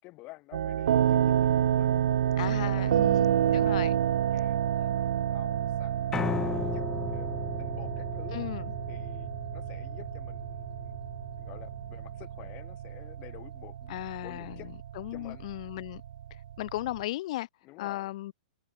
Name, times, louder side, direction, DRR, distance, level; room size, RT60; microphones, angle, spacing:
voice 1, 0.0-2.0 2.5-3.7 4.3-6.9 7.1-8.5 8.9-11.0 11.4-14.7 15.1-15.5 17.6-18.1, left 21 dB, 30° left, 4.1 m, -50 dB
sound 1, 0.5-17.0, right 10 dB, 70° right, 1.5 m, -29 dB
voice 2, 2.4-3.1 3.4-4.0 8.3-8.6 13.9-14.6 14.9-16.0 16.3-17.5 17.8-18.3, left 16 dB, 45° left, 3.3 m, -36 dB
Piano, 6.1-12.3, left 6 dB, 10° left, 1.4 m, -37 dB
hypercardioid pair, 160°, 5 cm